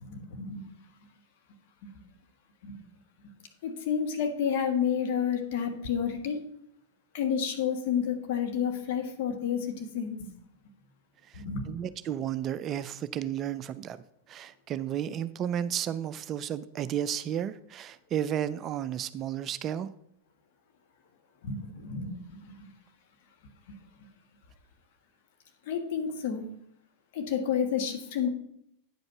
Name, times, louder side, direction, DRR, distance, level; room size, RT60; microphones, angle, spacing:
voice 1, 0.0-0.6 1.8-1.9 2.6-2.8 3.6-6.4 7.1-10.3 11.3-11.8 21.4-22.7 25.7-26.4 27.1-28.3, left 7 dB, 50° left, 4 dB, 1.5 m, -30 dB
voice 2, 11.3-14.0 14.3-19.9, right 10 dB, 30° right, 15 dB, 0.4 m, -33 dB
9.4 x 5.3 x 5.5 m, 0.71 s
figure-of-eight pair, 90°, 0 cm